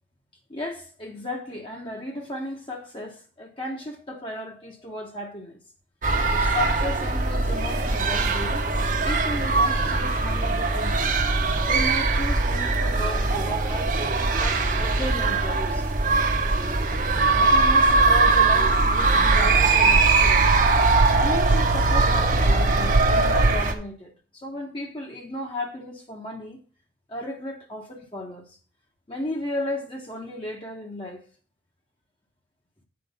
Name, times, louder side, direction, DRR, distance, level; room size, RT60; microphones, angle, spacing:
voice 1, 0.5-5.6 6.3-8.7 9.0-11.1 11.6-15.9 17.4-20.5 21.1-26.6 27.1-28.6 29.1-31.3, left 1 dB, 30° left, 0.9 m, -34 dB
sound 1, 6.0-23.7, right 3 dB, 45° right, 1.0 m, -21 dB
sound 2, 15.0-23.6, right 2 dB, 65° right, 0.5 m, -26 dB
7.8 x 4.5 x 5.3 m
head